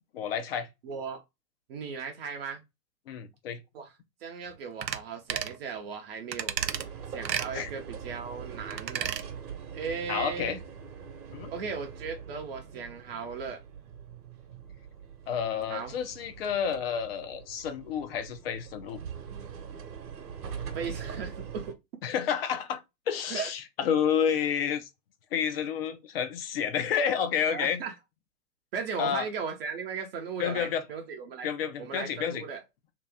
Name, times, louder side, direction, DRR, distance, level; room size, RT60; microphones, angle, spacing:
voice 1, 0.1-0.7 3.1-3.6 7.5-7.7 10.1-10.6 11.3-11.5 15.3-19.0 22.0-22.8 23.1-24.9 25.3-27.8 29.0-29.2 30.4-30.8 31.4-32.4, left 8 dB, 35° left, 0.6 m, -30 dB
voice 2, 0.8-1.2 1.7-2.6 3.7-3.9 4.2-6.6 7.1-9.1 9.7-10.6 11.5-13.6 15.7-15.9 20.7-21.8 23.3-23.5 27.5-27.9 28.7-31.5 31.8-32.6, right 5 dB, 35° right, 0.7 m, -37 dB
sound 1, 4.8-5.0 5.3-5.6 6.3-6.8 7.2-7.5 8.7-9.2 9.6-9.7, right 9 dB, 85° right, 0.6 m, -32 dB
sound 2, 6.6-21.7, right 7 dB, 65° right, 1.1 m, -43 dB
3.0 x 3.0 x 3.4 m
figure-of-eight pair, 120°, 50 cm